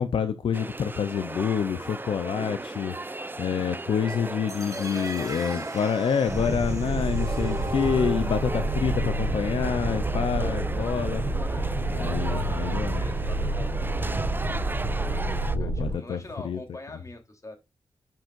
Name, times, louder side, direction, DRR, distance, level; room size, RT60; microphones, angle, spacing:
voice 1, 0.0-3.0 3.4-11.3 11.9-13.0 15.5-16.2 16.4-16.6, left 7 dB, 85° left, 0.6 m, -27 dB
sound 1, 0.5-15.6, right 2 dB, 25° right, 0.7 m, -36 dB
voice 2, 2.9-3.4 4.7-5.8 11.4-11.8 12.1-17.5, left 2 dB, 35° left, 3.4 m, -44 dB
sound 2, 4.5-10.5, right 2 dB, 40° right, 1.6 m, -39 dB
sound 3, 6.3-15.9, right 2 dB, 75° right, 2.0 m, -28 dB
10.5 x 5.8 x 2.5 m
cardioid pair, 40°, 9 cm